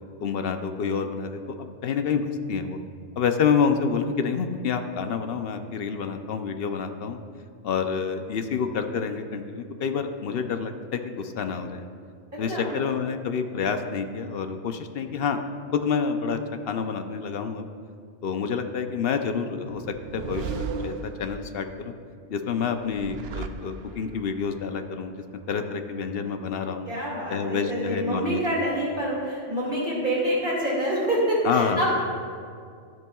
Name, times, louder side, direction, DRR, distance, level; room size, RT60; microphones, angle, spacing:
voice 1, 0.2-2.8 3.2-7.2 7.6-11.9 12.4-15.4 15.7-16.4 16.7-17.7 18.2-21.9 22.3-26.9 27.3-28.4 31.4-31.9, left 6 dB, 60° left, 7 dB, 0.8 m, -28 dB
voice 2, 12.3-12.7 26.9-31.9, equal, 45° right, -6 dB, 2.4 m, -26 dB
sound 1, 19.7-21.7 22.7-24.2, right 5 dB, 65° right, 0.8 m, -35 dB
13.5 x 10.5 x 2.3 m, 2.3 s
omnidirectional pair, 1.3 m